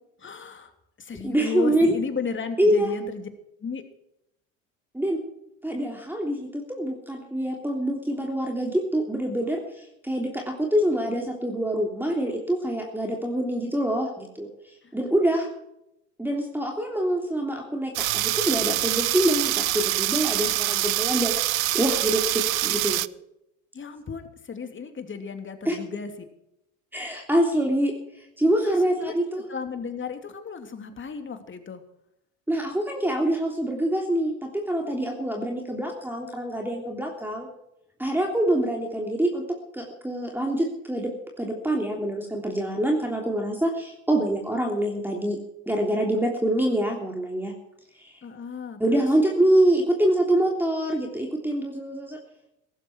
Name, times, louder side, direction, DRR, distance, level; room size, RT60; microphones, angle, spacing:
voice 1, 0.2-0.7 1.0-3.3 3.6-3.8 14.8-14.9 23.7-26.1 28.6-29.1 29.5-31.8 48.2-49.0, left 5 dB, 30° left, 7 dB, 3.0 m, -34 dB
voice 2, 1.2-2.0 2.6-2.9 4.9-5.2 5.6-15.5 16.2-23.0 25.7-25.8 26.9-29.4 32.5-37.5 38.0-41.1 41.4-45.4 45.7-47.5 48.0-48.2 48.8-52.2, right 1 dB, 5° right, 1 dB, 3.3 m, -25 dB
sound 1, 18.0-23.1, right 16 dB, 85° right, 0.6 m, -25 dB
17.5 x 14.5 x 4.7 m, 0.82 s
hypercardioid pair, 70°, 39 cm